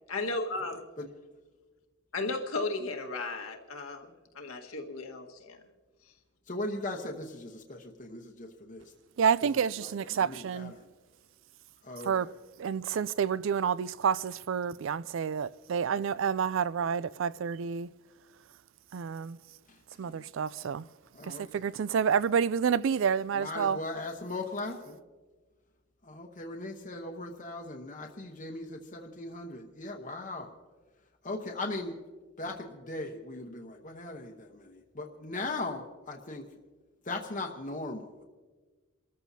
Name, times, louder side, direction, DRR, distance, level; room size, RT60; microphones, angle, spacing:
voice 1, 0.1-0.8 2.1-5.6, left 3 dB, 85° left, 1.6 m, -35 dB
voice 2, 6.5-8.8 9.4-9.5 9.8-10.9 11.8-12.3 19.7-19.8 20.0-20.2 21.1-21.7 23.3-25.0 26.0-30.5 31.2-32.0 32.4-36.5 37.0-38.2, left 2 dB, 35° left, 1.0 m, -39 dB
voice 3, 9.2-10.7 12.1-12.3 12.6-17.9 18.9-19.4 20.0-20.8 21.2-23.8, right 7 dB, 65° right, 0.4 m, -29 dB
29.0 x 14.0 x 2.8 m
head